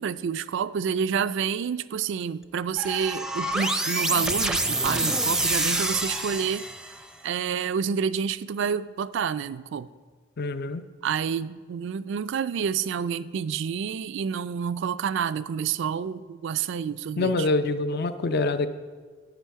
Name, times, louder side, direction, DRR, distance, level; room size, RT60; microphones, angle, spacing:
voice 1, 0.0-6.6 7.2-9.9 11.0-17.5, right 7 dB, 65° right, 14 dB, 0.3 m, -28 dB
sound 1, 2.8-7.1, right 2 dB, 5° right, 0.5 m, -27 dB
voice 2, 10.4-10.8 17.2-18.7, left 3 dB, 55° left, 11 dB, 0.5 m, -25 dB
11.5 x 9.0 x 4.7 m, 1.5 s
head